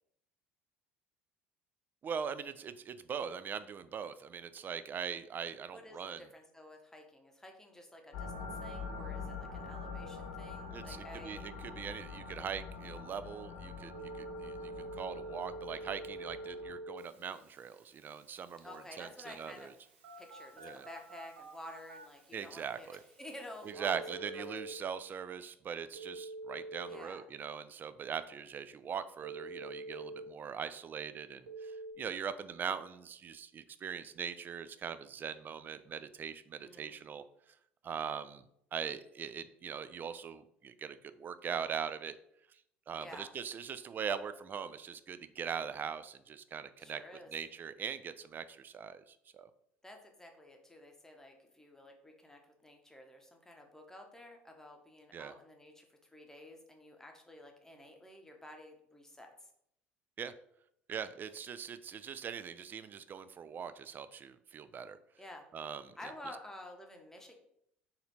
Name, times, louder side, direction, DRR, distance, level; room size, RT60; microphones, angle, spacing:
voice 1, 2.0-6.2 10.7-13.9 14.2-19.7 20.6-20.9 22.3-23.0 23.6-37.2 37.8-38.4 38.7-42.2 42.9-47.0 47.3-49.5 55.1-55.3 60.2-60.3 60.9-65.0 65.5-65.9, right 7 dB, 30° right, 13 dB, 0.3 m, -41 dB
voice 2, 5.7-11.4 18.6-19.7 20.2-24.6 26.9-27.2 36.6-37.0 43.0-43.3 46.8-47.3 49.8-59.5 65.2-65.4 66.0-67.4, left 1 dB, 5° left, 2 dB, 0.9 m, -51 dB
sound 1, 8.1-16.7, left 4 dB, 60° left, 0.9 m, -45 dB
Telephone, 13.9-24.7 25.9-27.0 29.2-30.2 31.5-31.9, right 2 dB, 70° right, 0.8 m, -47 dB
4.1 x 2.6 x 4.0 m, 0.72 s
figure-of-eight pair, 65°, 6 cm